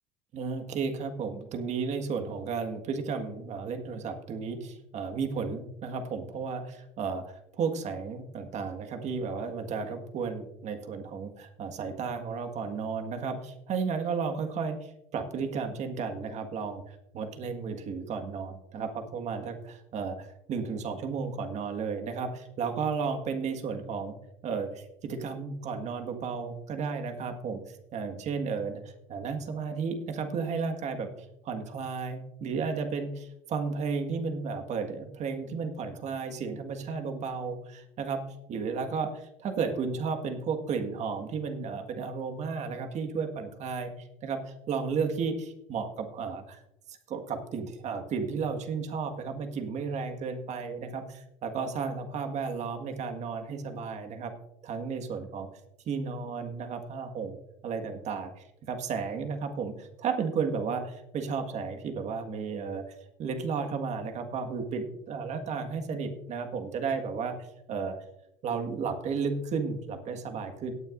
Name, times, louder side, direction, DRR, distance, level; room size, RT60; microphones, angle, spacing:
voice 1, 0.3-24.2 24.4-28.8 29.1-31.1 31.4-38.2 38.5-46.6 46.9-54.3 54.6-55.5 55.9-57.4 57.6-62.8 63.2-68.0 68.4-70.7, right 5 dB, 50° right, 6 dB, 1.7 m, -33 dB
17.5 x 9.2 x 2.6 m, 0.82 s
supercardioid pair, 95°, 16 cm